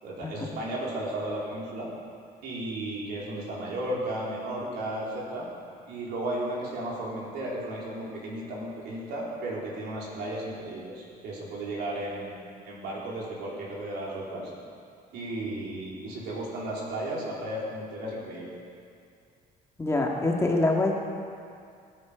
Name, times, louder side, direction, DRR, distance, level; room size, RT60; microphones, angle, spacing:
voice 1, 0.0-1.9 2.4-5.5 5.9-14.5 15.1-18.5, right 1 dB, 75° right, -4 dB, 4.0 m, -34 dB
voice 2, 19.8-20.9, left 2 dB, 15° left, -1 dB, 1.9 m, -25 dB
19.5 x 9.8 x 5.2 m, 2.3 s
cardioid pair, 110°, 17 cm